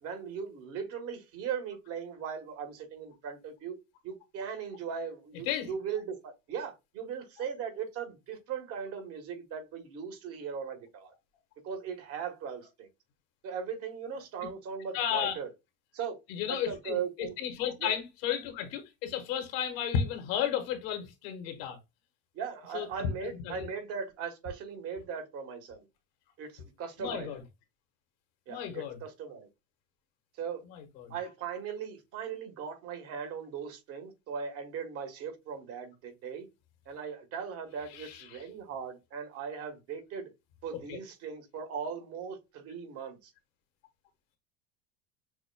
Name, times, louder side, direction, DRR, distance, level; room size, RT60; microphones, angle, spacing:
voice 1, 0.0-3.8 4.0-11.1 11.6-12.9 13.4-15.5 15.9-16.2 16.5-17.3 17.8-17.9 22.3-25.9 26.4-27.3 28.5-29.5 30.4-30.6 31.1-36.5 36.8-40.3 40.6-43.3, right 7 dB, 50° right, 1.3 m, -38 dB
voice 2, 14.9-15.4 16.3-21.8 22.7-23.7 27.0-27.4 28.5-29.0 30.6-31.1 37.9-38.4 40.7-41.0, left 9 dB, 75° left, 1.3 m, -33 dB
6.1 x 2.2 x 2.2 m
supercardioid pair, 115°, 30 cm